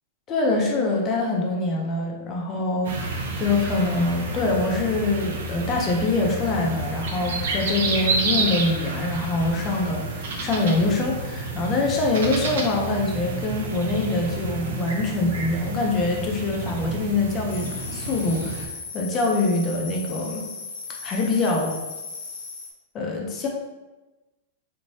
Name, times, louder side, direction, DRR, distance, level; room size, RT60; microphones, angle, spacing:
voice 1, 0.3-20.4 21.0-21.8 22.9-23.5, left 2 dB, 20° left, 0 dB, 0.5 m, -24 dB
sound 1, 2.8-18.7, right 3 dB, 70° right, 0.7 m, -30 dB
sound 2, 17.5-22.7, left 4 dB, 75° left, 0.9 m, -37 dB
4.2 x 3.1 x 2.7 m, 1.1 s
supercardioid pair, 175°, 0 cm